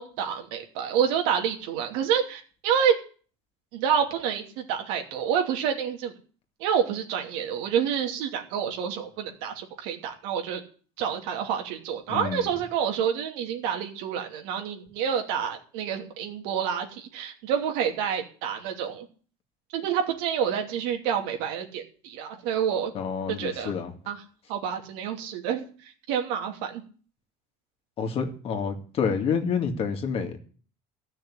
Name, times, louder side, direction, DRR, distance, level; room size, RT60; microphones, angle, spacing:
voice 1, 0.0-2.9 3.7-6.1 6.6-10.6 11.0-19.1 19.7-22.9 23.4-23.7 24.1-24.2 24.5-25.6 26.1-26.8, right 8 dB, 85° right, 3 dB, 2.8 m, -28 dB
voice 2, 12.1-12.5 22.9-23.9 28.0-30.4, left 6 dB, 45° left, 5 dB, 2.4 m, -28 dB
14.0 x 6.5 x 9.9 m, 0.42 s
cardioid pair, 130°, 13 cm